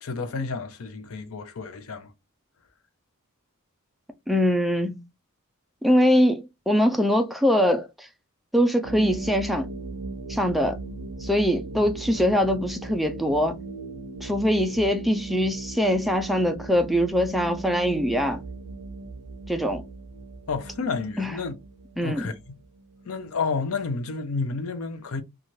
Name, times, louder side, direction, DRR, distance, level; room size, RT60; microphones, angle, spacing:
voice 1, 0.0-2.1 20.5-21.5 22.0-22.5 23.0-25.2, left 4 dB, 75° left, 0.5 m, -30 dB
voice 2, 4.3-5.1 5.8-8.1 8.5-9.7 10.3-10.8 11.2-13.6 14.2-18.4 19.5-19.8 21.2-21.4 22.0-22.3, equal, ahead, 0.3 m, -23 dB
sound 1, 8.8-23.2, right 3 dB, 70° right, 0.5 m, -38 dB
3.0 x 2.3 x 2.6 m
head